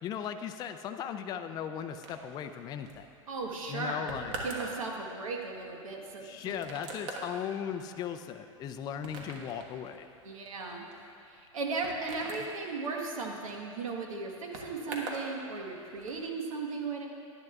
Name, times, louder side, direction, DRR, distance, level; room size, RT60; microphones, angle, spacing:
voice 1, 0.0-3.1 3.7-4.3 6.2-10.1, left 8 dB, 25° left, 7 dB, 0.3 m, -37 dB
sound 1, 2.0-15.3 15.6-16.2, right 2 dB, 60° right, 1.4 m, -44 dB
voice 2, 3.3-4.1 4.4-6.6 10.2-10.9 11.3-17.1, right 4 dB, 85° right, 1 dB, 1.3 m, -36 dB
10.5 x 10.5 x 2.4 m, 2.5 s
hypercardioid pair, 120°, 17 cm